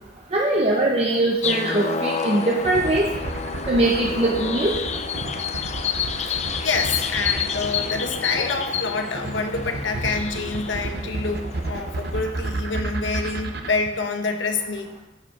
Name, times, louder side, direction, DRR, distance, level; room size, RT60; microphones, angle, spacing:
voice 1, 0.3-3.0 3.7-4.7, right 2 dB, 35° right, -2 dB, 0.9 m, -21 dB
sound 1, 1.4-12.5, left 6 dB, 40° left, 0.6 m, -29 dB
sound 2, 2.6-13.7, right 2 dB, 60° right, 0.8 m, -31 dB
voice 2, 6.2-15.0, left 4 dB, 80° left, 4 dB, 1.1 m, -27 dB
9.6 x 5.1 x 5.8 m, 1.0 s
head